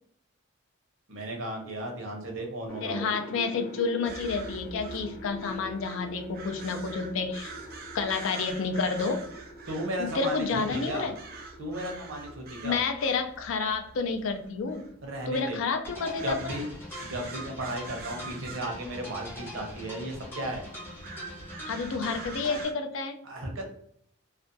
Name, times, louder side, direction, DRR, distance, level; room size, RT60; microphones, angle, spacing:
voice 1, 1.1-3.1 9.7-11.1 11.6-12.8 15.0-15.6 16.2-16.7 17.0-20.7 23.2-23.7, right 1 dB, 70° right, 2 dB, 0.7 m, -35 dB
sound 1, 2.7-11.6 11.8-12.6, equal, 50° left, 0.8 m, -44 dB
voice 2, 2.8-7.5 7.9-9.2 10.0-11.1 12.6-14.9 15.3-16.4 21.7-23.2, left 4 dB, 70° left, 6 dB, 0.4 m, -30 dB
sound 2, 4.0-22.7, right 4 dB, 45° right, 0.4 m, -46 dB
sound 3, 15.8-22.6, equal, 10° left, 0.6 m, -42 dB
2.4 x 2.2 x 2.5 m, 0.67 s
head